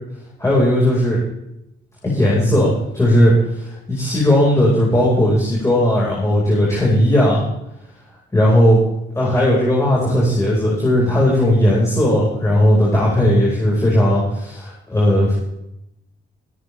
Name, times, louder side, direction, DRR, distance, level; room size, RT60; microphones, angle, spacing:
voice 1, 0.4-1.2 2.0-3.3 3.9-7.4 8.3-8.8 9.1-15.3, left 1 dB, 15° left, -5 dB, 4.8 m, -16 dB
22.0 x 9.6 x 3.4 m, 0.84 s
cardioid pair, 90°, 20 cm